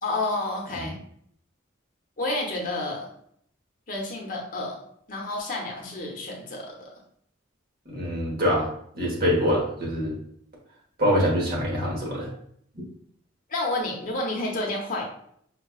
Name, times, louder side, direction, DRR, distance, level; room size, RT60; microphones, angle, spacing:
voice 1, 0.0-1.0 2.2-3.1 3.9-4.8 5.1-6.9 13.5-15.0, left 2 dB, 45° left, -1 dB, 0.8 m, -30 dB
voice 2, 7.9-8.7 8.9-10.2 11.0-12.3, equal, 50° right, -4 dB, 1.2 m, -24 dB
5.4 x 2.3 x 2.3 m, 0.67 s
head